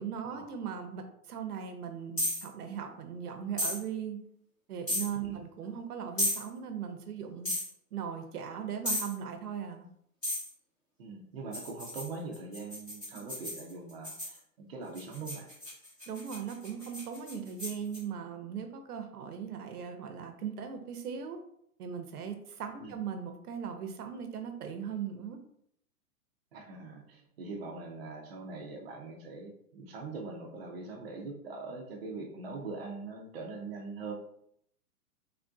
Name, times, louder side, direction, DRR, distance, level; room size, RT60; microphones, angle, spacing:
voice 1, 0.0-4.2 4.7-7.5 7.9-9.9 13.1-13.2 16.1-21.4 21.8-25.4, right 7 dB, 75° right, 7 dB, 0.7 m, -39 dB
sound 1, 2.2-2.5 3.6-3.8 4.9-5.1 6.2-6.4 7.5-7.7 8.9-9.1 10.2-10.5 11.5-14.4 14.9-18.0, left 1 dB, 10° left, 0.7 m, -34 dB
voice 2, 11.0-15.5 22.8-23.0 26.5-34.1, right 3 dB, 40° right, 0 dB, 0.5 m, -42 dB
3.5 x 2.5 x 2.3 m, 0.70 s
hypercardioid pair, 165°, 46 cm